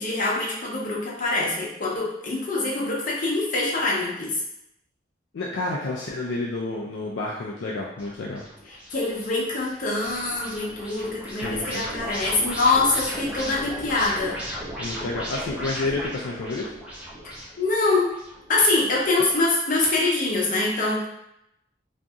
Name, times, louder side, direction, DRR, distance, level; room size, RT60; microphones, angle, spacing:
voice 1, 0.0-4.3 8.9-14.4 17.6-18.2 18.5-21.1, left 2 dB, 45° left, -4 dB, 0.7 m, -24 dB
voice 2, 5.3-8.4 11.3-11.9 14.8-16.7, left 2 dB, 70° left, -3 dB, 0.4 m, -30 dB
sound 1, 8.0-19.5, equal, 5° right, 0.6 m, -36 dB
2.7 x 2.5 x 2.3 m, 0.82 s
head